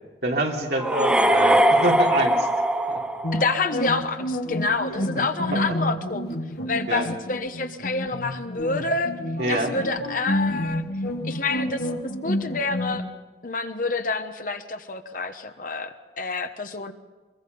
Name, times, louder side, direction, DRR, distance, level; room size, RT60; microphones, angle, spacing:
voice 1, 0.2-2.5 2.9-3.0 5.1-5.2 5.5-5.6 6.9-7.1 9.4-9.7, right 2 dB, 60° right, -1 dB, 3.3 m, -25 dB
sound 1, 0.8-3.8, right 1 dB, 5° right, 1.1 m, -21 dB
sound 2, 3.2-13.0, left 1 dB, 70° left, 2.6 m, -29 dB
voice 2, 3.3-6.2 6.7-9.1 9.5-10.8 11.2-11.9 12.2-13.0 13.4-16.9, left 3 dB, 50° left, 8 dB, 1.2 m, -28 dB
23.0 x 23.0 x 5.5 m, 1.3 s
head